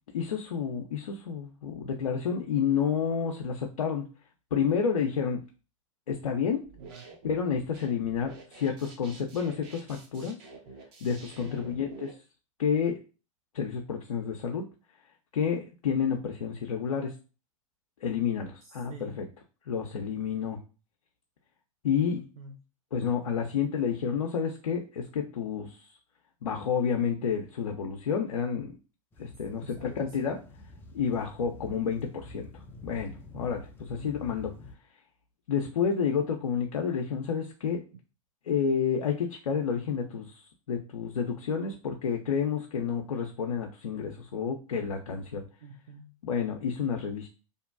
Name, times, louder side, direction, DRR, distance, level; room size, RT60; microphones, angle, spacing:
voice 1, 0.1-4.1 4.5-5.4 6.1-6.6 7.2-10.4 11.0-12.1 12.6-13.0 13.5-14.6 15.3-17.1 18.0-19.2 19.7-20.6 21.8-22.2 22.9-25.8 26.4-28.8 29.2-30.4 30.9-32.5 32.8-34.5 35.5-37.8 38.5-45.4 46.2-47.3, left 7 dB, 80° left, 2 dB, 0.4 m, -30 dB
sound 1, 6.6-12.1, right 3 dB, 45° right, 0.8 m, -49 dB
voice 2, 6.8-7.1 11.4-11.8 18.6-19.2 22.1-22.6 29.6-30.4 34.0-34.1 45.6-46.1, right 3 dB, 80° right, 3 dB, 0.5 m, -47 dB
sound 2, 29.1-34.7, left 2 dB, 10° left, 0.4 m, -48 dB
2.5 x 2.1 x 2.4 m, 0.34 s
hypercardioid pair, 100°, 18 cm